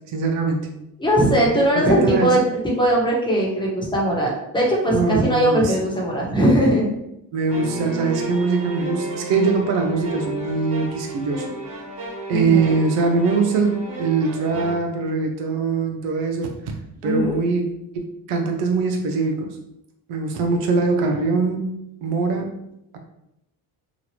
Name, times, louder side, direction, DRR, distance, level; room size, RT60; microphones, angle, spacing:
voice 1, 0.1-0.7 1.4-1.5 1.7-2.4 4.9-5.7 7.3-11.5 12.3-16.6 17.0-17.6 17.9-19.6 20.1-21.7 22.0-22.5, right 4 dB, 80° right, 3 dB, 0.8 m, -22 dB
voice 2, 1.0-6.9 12.3-12.8 17.0-17.3, right 1 dB, 10° left, -3 dB, 1.1 m, -20 dB
sound 1, 7.5-14.7, right 2 dB, 60° right, 1.3 m, -32 dB
2.9 x 2.5 x 2.9 m, 0.83 s
supercardioid pair, 75°, 49 cm